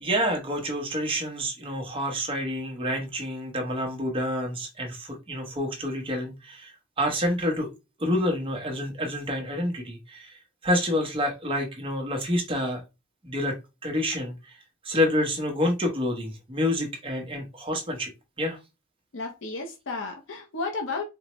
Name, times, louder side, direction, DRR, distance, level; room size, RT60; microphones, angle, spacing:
voice 1, 0.0-7.7 8.0-12.8 13.2-13.6 13.8-14.6 14.8-18.1 18.4-18.6, left 1 dB, 25° right, 0.9 m, -28 dB
voice 2, 19.1-21.0, left 3 dB, 65° left, 0.6 m, -33 dB
4.3 x 2.1 x 3.0 m
head